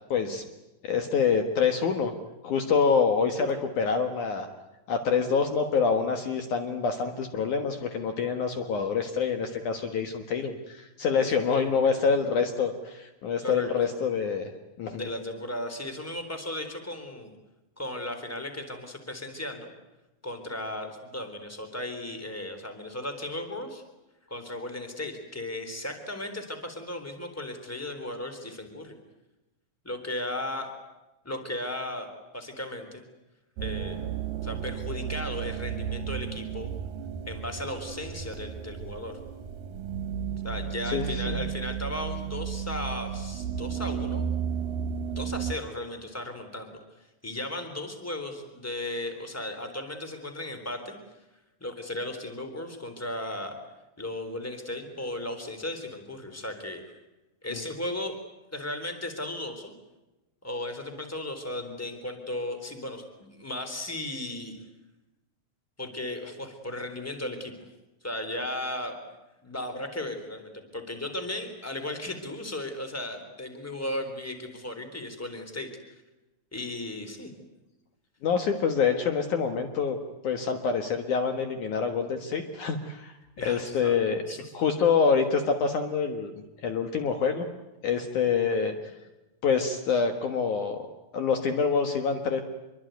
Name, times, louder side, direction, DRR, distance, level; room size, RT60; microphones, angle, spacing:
voice 1, 0.1-0.4 0.8-2.1 2.4-4.5 4.9-14.5 14.8-15.1 40.8-41.4 57.5-57.6 78.2-80.0 80.2-83.1 83.4-84.2 84.5-87.5 87.8-88.8 89.4-90.8 91.1-92.4, left 5 dB, 60° left, 6 dB, 2.8 m, -26 dB
voice 2, 11.2-12.0 13.4-13.9 14.9-17.3 17.8-19.7 20.2-23.8 24.3-28.9 29.8-30.7 31.2-32.1 32.3-33.0 33.6-34.0 34.4-36.7 37.3-39.2 40.4-44.2 45.1-46.8 47.2-51.0 51.6-53.5 54.0-56.8 57.4-58.1 58.5-59.7 60.4-64.6 65.8-67.5 68.0-69.0 69.4-76.0 76.5-77.3 83.4-84.4, left 1 dB, 5° left, 7 dB, 3.5 m, -36 dB
sound 1, 33.6-45.5, right 8 dB, 70° right, 2.9 m, -33 dB
26.5 x 23.5 x 9.3 m, 1.0 s
omnidirectional pair, 4.2 m